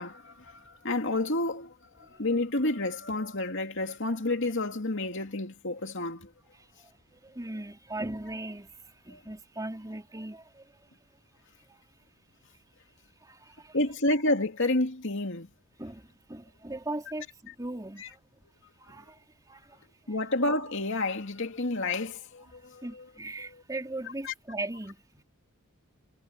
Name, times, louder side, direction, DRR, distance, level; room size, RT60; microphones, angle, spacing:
voice 1, 0.0-6.3 9.1-9.2 13.7-15.5 18.0-18.1 20.1-23.0 24.2-24.3, left 2 dB, 60° left, 2.6 m, -30 dB
voice 2, 6.6-10.7 11.7-11.8 13.2-13.8 15.8-18.2 18.8-20.2 22.8-25.2, right 2 dB, 15° right, 3.2 m, -39 dB
head